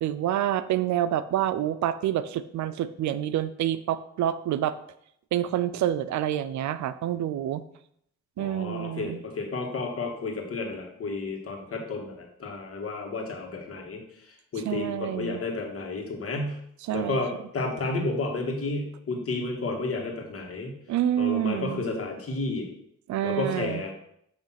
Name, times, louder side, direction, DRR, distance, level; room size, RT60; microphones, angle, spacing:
voice 1, 0.0-4.8 5.3-7.6 8.4-9.2 14.7-15.4 16.9-17.2 20.9-21.9 23.1-23.8, right 11 dB, 70° right, 14 dB, 0.5 m, -27 dB
voice 2, 8.4-16.6 16.9-20.7 21.2-22.7 23.2-23.9, left 3 dB, 50° left, 1 dB, 1.8 m, -32 dB
8.5 x 3.2 x 5.8 m, 0.72 s
cardioid pair, 90°, 30 cm